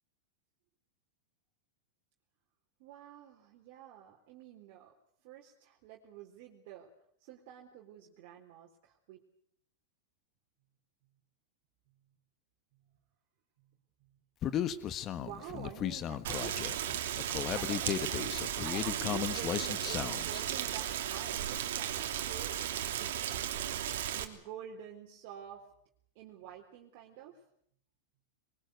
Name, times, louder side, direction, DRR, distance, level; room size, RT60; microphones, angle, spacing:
voice 1, 2.8-4.9 5.2-6.9 7.2-9.2 12.8-13.0 13.6-14.6 15.2-16.8 17.4-23.5 24.1-25.7 26.2-27.4, right 10 dB, 55° right, -1 dB, 3.8 m, -49 dB
Human voice, 14.4-20.4, left 10 dB, 35° left, 1.5 m, -35 dB
Rain, 16.2-24.2, right 11 dB, 75° right, 3.0 m, -35 dB
22.5 x 21.5 x 8.1 m, 0.67 s
hypercardioid pair, 125°, 0 cm